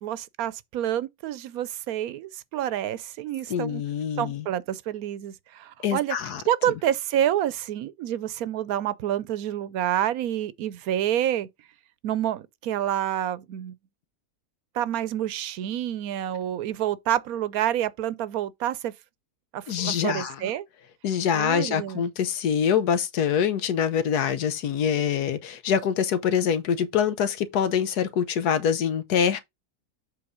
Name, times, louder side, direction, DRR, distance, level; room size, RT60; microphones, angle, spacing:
voice 1, 0.0-3.8 4.2-6.2 6.5-11.5 12.0-13.7 14.7-18.9 19.5-20.7 21.3-22.0, right 11 dB, 75° right, 1.1 m, -28 dB
voice 2, 3.5-4.5 5.8-6.4 19.7-20.4 21.0-29.4, left 8 dB, 90° left, 1.4 m, -25 dB
7.8 x 3.6 x 5.0 m
omnidirectional pair, 1.6 m